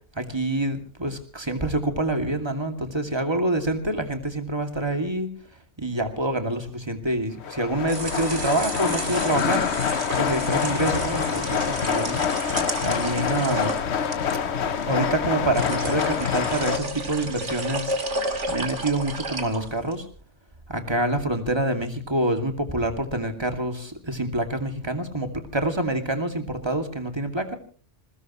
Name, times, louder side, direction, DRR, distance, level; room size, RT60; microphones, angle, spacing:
voice 1, 0.2-5.3 5.8-9.7 10.2-12.3 12.8-13.7 14.9-18.0 18.5-20.1 20.7-27.6, right 1 dB, 20° right, 5 dB, 2.6 m, -26 dB
sound 1, 7.4-16.8, left 7 dB, 65° left, 1.2 m, -26 dB
sound 2, 7.7-20.0, right 2 dB, 70° right, 2.8 m, -33 dB
22.0 x 20.0 x 3.2 m, 0.40 s
omnidirectional pair, 1.3 m